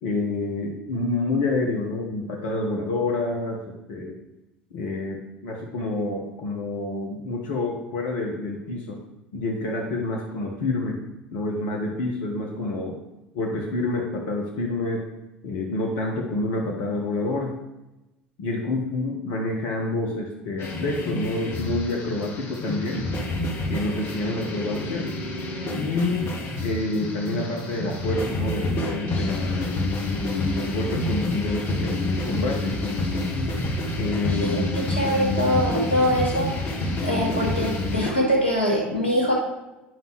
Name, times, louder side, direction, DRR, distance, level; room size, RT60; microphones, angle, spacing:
voice 1, 0.0-3.6 3.9-4.2 4.7-9.0 9.3-11.0 11.3-13.0 13.3-15.0 15.4-17.5 18.4-23.1 23.7-25.1 25.7-32.8 34.0-34.6, left 2 dB, 60° left, 0 dB, 1.1 m, -28 dB
sound 1, 20.6-38.1, left 2 dB, 40° left, 1.3 m, -28 dB
voice 2, 35.0-36.5 37.0-39.3, equal, 90° left, -2 dB, 1.8 m, -23 dB
9.3 x 5.3 x 3.0 m, 0.99 s
figure-of-eight pair, 70°, 6 cm